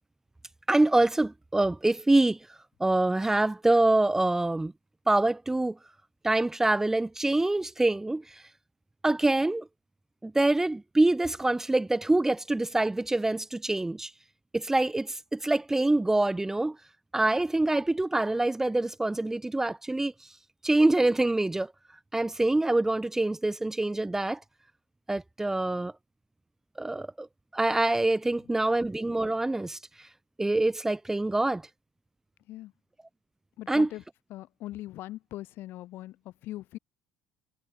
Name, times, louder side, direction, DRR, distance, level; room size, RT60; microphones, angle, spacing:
voice 1, 0.7-2.4 2.8-4.7 5.1-5.8 6.2-8.4 9.0-9.7 10.2-14.1 14.5-16.8 17.1-20.1 20.6-21.7 22.1-24.4 25.1-25.9 26.8-27.3 27.5-30.1 30.4-31.6 33.7-33.9, right 2 dB, 10° right, 0.9 m, -25 dB
voice 2, 33.6-34.0 34.3-36.8, left 15 dB, 65° left, 6.9 m, -41 dB
supercardioid pair, 85°, 4 cm